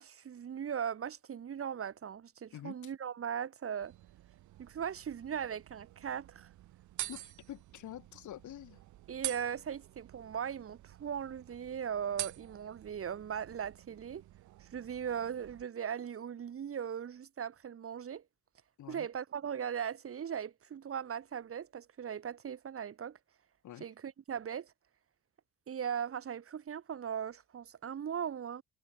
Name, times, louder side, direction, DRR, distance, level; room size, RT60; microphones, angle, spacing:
voice 1, 0.0-3.9 4.6-6.5 9.1-14.2 14.6-18.2 18.9-23.2 23.8-24.7 25.7-28.6, right 8 dB, 50° right, 1.6 m, -39 dB
voice 2, 2.5-2.9 7.1-8.8 18.8-19.1 23.6-23.9, left 12 dB, 75° left, 3.4 m, -47 dB
sound 1, 3.8-15.6, right 15 dB, 75° right, 0.8 m, -47 dB
cardioid pair, 90°, 30 cm